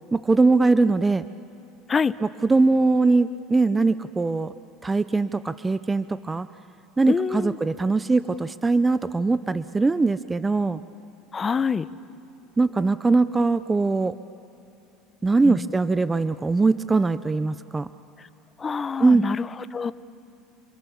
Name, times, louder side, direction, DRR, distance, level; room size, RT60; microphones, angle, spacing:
voice 1, 0.1-1.3 2.2-4.5 4.8-6.5 7.0-10.8 12.6-14.2 15.2-17.9 19.0-19.2, right 3 dB, 15° right, 14 dB, 0.5 m, -21 dB
voice 2, 7.1-7.6 11.3-11.9 15.4-15.7 18.6-19.9, left 5 dB, 25° left, 16 dB, 0.7 m, -26 dB
28.0 x 23.5 x 7.1 m, 2.8 s
supercardioid pair, 105°, 0 cm